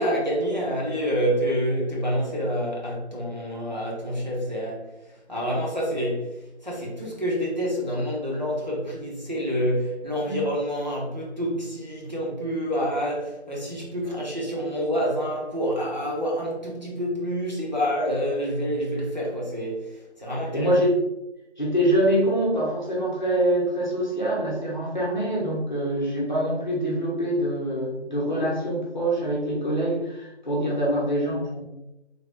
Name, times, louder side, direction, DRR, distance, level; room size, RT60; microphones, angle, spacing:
voice 1, 0.0-20.7, equal, 40° right, -4 dB, 0.5 m, -27 dB
voice 2, 20.5-20.9 21.6-31.6, right 1 dB, 40° left, -4 dB, 0.7 m, -25 dB
3.3 x 2.2 x 2.4 m, 0.93 s
figure-of-eight pair, 170°, 35 cm